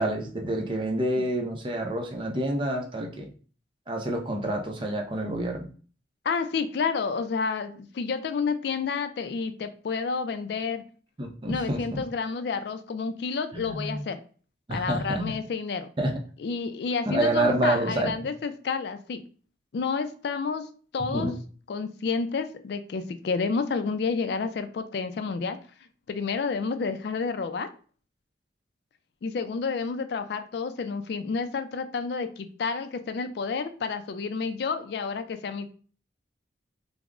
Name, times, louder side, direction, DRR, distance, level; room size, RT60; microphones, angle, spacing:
voice 1, 0.0-3.3 3.9-5.7 11.2-12.0 13.5-14.0 14.7-15.4 16.0-16.1 17.1-18.1 21.1-21.3, right 1 dB, 25° right, 2 dB, 0.5 m, -28 dB
voice 2, 6.2-10.8 11.5-14.2 14.7-15.9 16.4-19.2 19.7-20.7 20.9-21.3 21.7-25.6 26.1-27.7 29.2-35.7, left 5 dB, 60° left, 9 dB, 0.3 m, -30 dB
3.4 x 2.0 x 3.6 m, 0.41 s
head